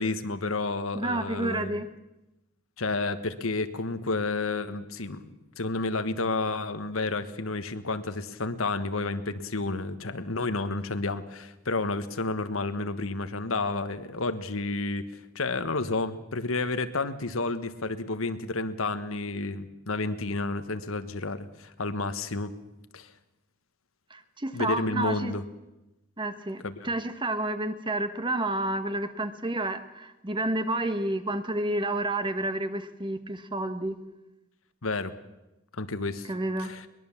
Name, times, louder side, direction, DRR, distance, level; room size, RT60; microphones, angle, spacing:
voice 1, 0.0-1.8 2.8-15.1 15.3-22.5 22.9-23.1 24.5-25.4 26.6-26.9 34.8-35.2 35.8-36.3 36.6-36.9, left 3 dB, 85° left, 10 dB, 1.4 m, -31 dB
voice 2, 0.9-1.9 24.1-25.3 26.2-33.9 36.3-36.7, right 1 dB, 25° right, 10 dB, 1.3 m, -30 dB
22.5 x 20.5 x 7.2 m, 0.97 s
head